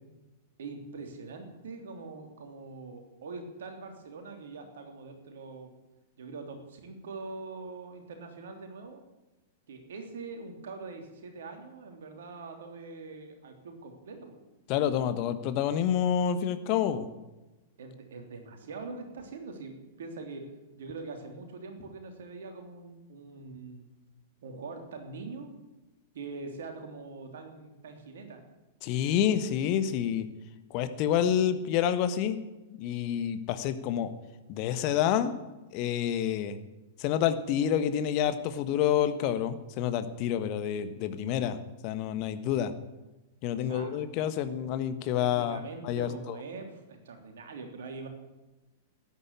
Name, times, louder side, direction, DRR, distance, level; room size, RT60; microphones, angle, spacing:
voice 1, 0.6-5.7 6.2-9.0 9.7-14.4 17.8-23.9 24.4-25.5 26.1-28.4 43.5-44.0 45.2-48.1, right 3 dB, 60° right, 4 dB, 3.2 m, -43 dB
voice 2, 14.7-17.1 28.8-30.3 30.7-32.4 32.8-34.1 34.5-35.3 35.7-36.6 37.0-41.6 41.8-42.7 43.4-45.6 45.8-46.3, left 9 dB, 40° left, 11 dB, 1.4 m, -28 dB
13.5 x 10.0 x 9.9 m, 1.1 s
figure-of-eight pair, 100°, 0 cm